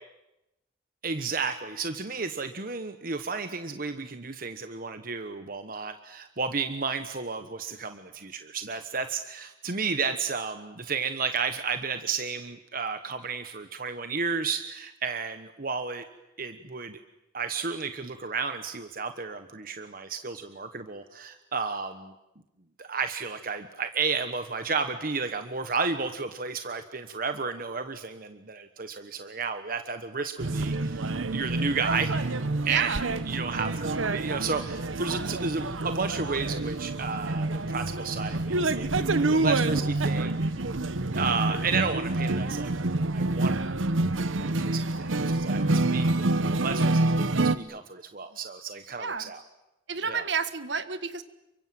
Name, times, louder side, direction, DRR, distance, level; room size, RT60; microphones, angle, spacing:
voice 1, 1.0-16.0 16.4-17.0 17.3-22.1 22.8-32.1 32.6-40.4 41.1-42.7 43.1-43.5 44.2-49.4 50.1-50.3, right 5 dB, 45° right, 8 dB, 1.2 m, -32 dB
sound 1, 30.4-47.6, right 2 dB, 90° right, 1.0 m, -27 dB
voice 2, 32.7-33.1 49.0-49.3 49.9-51.2, right 5 dB, 65° right, 11 dB, 1.6 m, -30 dB
29.5 x 24.0 x 7.9 m, 0.94 s
head